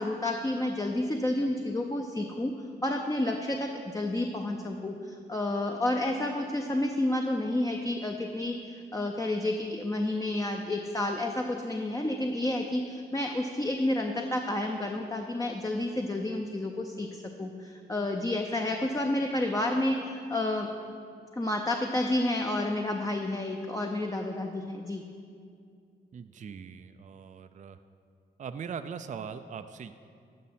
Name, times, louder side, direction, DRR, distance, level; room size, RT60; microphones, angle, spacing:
voice 1, 0.0-2.5 2.8-20.7 21.3-25.0, left 1 dB, 15° left, 2 dB, 0.6 m, -30 dB
voice 2, 26.1-27.8 28.4-29.9, right 6 dB, 35° right, 10 dB, 0.4 m, -40 dB
11.0 x 5.4 x 4.3 m, 2.3 s
supercardioid pair, 45°, 21 cm